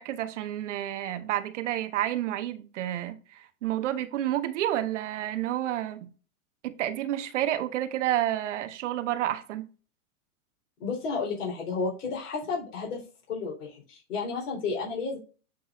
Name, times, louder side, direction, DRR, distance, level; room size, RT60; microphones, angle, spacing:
voice 1, 0.0-6.1 6.6-9.7, right 13 dB, 50° right, 0.8 m, -30 dB
voice 2, 10.8-13.0 13.3-15.2, left 4 dB, 90° left, 4.0 m, -32 dB
7.6 x 6.0 x 2.5 m
supercardioid pair, 170°, 45 cm